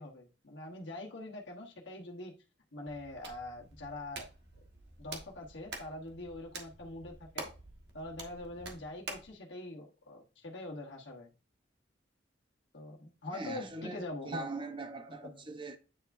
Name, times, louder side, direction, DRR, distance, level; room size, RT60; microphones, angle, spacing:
voice 1, 0.0-2.3 2.7-4.2 5.0-7.5 7.9-11.3 12.7-14.4 15.2-15.5, left 2 dB, 85° left, 1.2 m, -44 dB
Hands, 2.9-9.3, right 3 dB, 65° right, 1.5 m, -47 dB
voice 2, 13.3-15.8, right 2 dB, 30° right, 0.9 m, -41 dB
9.4 x 4.6 x 2.6 m
head